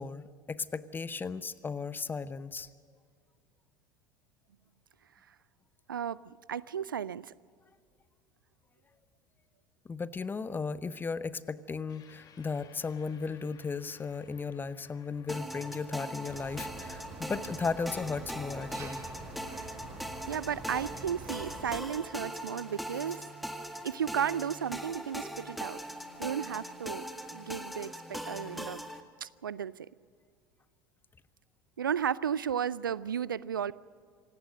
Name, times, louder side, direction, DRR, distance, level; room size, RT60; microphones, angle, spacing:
voice 1, 0.0-2.7 9.8-19.0, left 4 dB, 20° left, 16 dB, 0.9 m, -36 dB
voice 2, 5.9-7.3 20.3-23.2 23.8-25.8 26.2-27.0 27.3-28.8 29.2-29.9 31.8-33.7, right 8 dB, 75° right, 21 dB, 0.5 m, -34 dB
sound 1, 11.9-20.6, left 7 dB, 35° left, 2.2 m, -62 dB
sound 2, 15.3-29.0, equal, ahead, 1.8 m, -41 dB
sound 3, 16.3-21.8, right 3 dB, 30° right, 7.0 m, -46 dB
26.5 x 18.0 x 6.5 m, 2.1 s
figure-of-eight pair, 70°, 11 cm